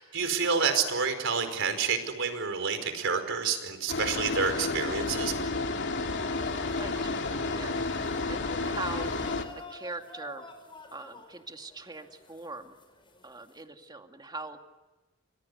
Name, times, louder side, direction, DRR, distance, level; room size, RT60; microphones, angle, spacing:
voice 1, 0.0-5.3, right 5 dB, 65° right, 8 dB, 4.8 m, -29 dB
sound 1, 3.9-9.5, left 3 dB, 55° left, 3.0 m, -31 dB
sound 2, 6.2-13.6, left 2 dB, 25° left, 5.2 m, -48 dB
voice 2, 6.8-10.5 10.9-12.8 13.2-14.6, right 3 dB, 20° right, 5 dB, 2.3 m, -42 dB
29.5 x 26.0 x 6.8 m, 1.2 s
head